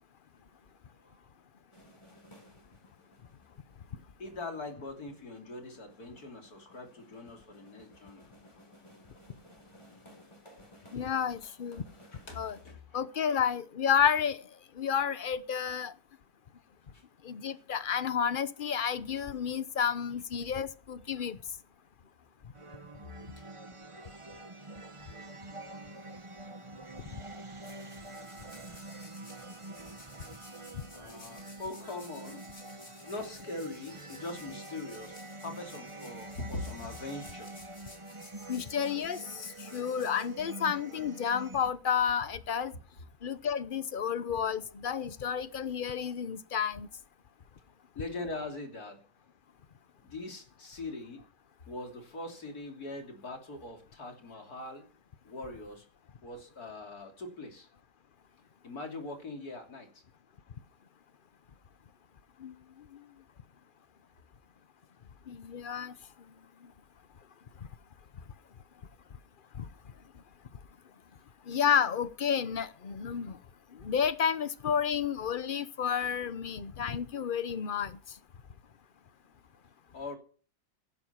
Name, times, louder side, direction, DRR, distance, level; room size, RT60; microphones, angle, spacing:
sound 1, 1.7-12.7, equal, 20° left, 4.0 m, -59 dB
voice 1, 4.2-8.3 10.8-10.9 12.1-13.4 16.9-17.0 21.2-21.3 23.4-23.5 24.4-24.8 25.2-25.3 26.1-26.2 30.9-32.5 33.0-37.6 48.0-49.0 50.0-51.2 51.7-54.9 55.2-55.9 56.2-57.7 58.6-60.0 79.9-80.2, left 2 dB, 80° left, 3.6 m, -42 dB
voice 2, 10.9-11.8 12.3-12.6 12.9-14.4 14.8-15.9 17.2-21.4 38.5-39.2 39.7-42.7 43.2-46.9 62.4-62.5 65.3-65.9 69.6-69.7 71.5-73.4 73.8-78.0, left 7 dB, 40° left, 0.9 m, -31 dB
sound 2, 22.5-41.7, right 2 dB, 25° right, 0.9 m, -46 dB
sound 3, 27.3-40.9, left 2 dB, 60° left, 4.9 m, -55 dB
15.5 x 11.5 x 5.9 m
omnidirectional pair, 1.6 m